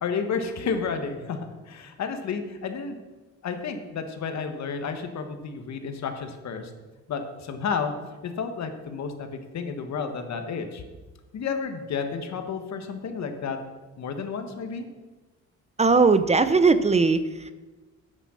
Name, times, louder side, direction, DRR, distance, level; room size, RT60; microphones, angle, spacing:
voice 1, 0.0-1.4 1.7-3.0 3.4-6.7 7.1-7.9 8.2-10.8 11.3-13.6 14.0-14.9, left 5 dB, 65° left, 7 dB, 1.5 m, -31 dB
voice 2, 15.8-17.5, right 4 dB, 20° right, 12 dB, 0.6 m, -19 dB
9.1 x 8.0 x 6.4 m, 1.2 s
cardioid pair, 90°, 30 cm